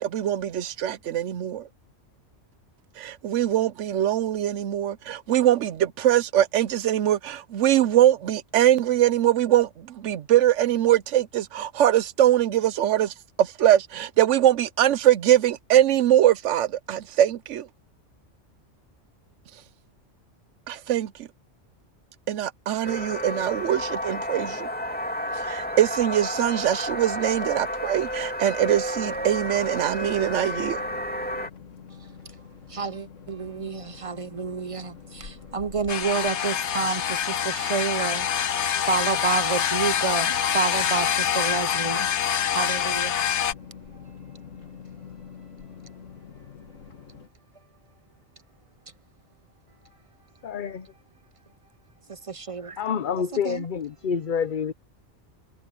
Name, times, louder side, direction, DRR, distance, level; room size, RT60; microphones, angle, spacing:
voice 1, 0.0-1.7 3.0-17.7 20.7-21.1 22.3-24.7 25.4-30.8, right 12 dB, 75° right, 1.0 m, -22 dB
sound 1, 22.8-31.5, equal, 5° left, 2.2 m, -31 dB
sound 2, 29.0-47.3, left 6 dB, 90° left, 2.0 m, -46 dB
voice 2, 32.7-38.3 38.8-42.1 42.5-43.2 52.1-52.8 53.4-53.6, right 5 dB, 40° right, 0.5 m, -29 dB
sound 3, 35.9-43.5, left 9 dB, 70° left, 1.2 m, -25 dB
voice 3, 50.4-50.9 52.8-54.7, left 7 dB, 50° left, 0.8 m, -27 dB
omnidirectional pair, 1.3 m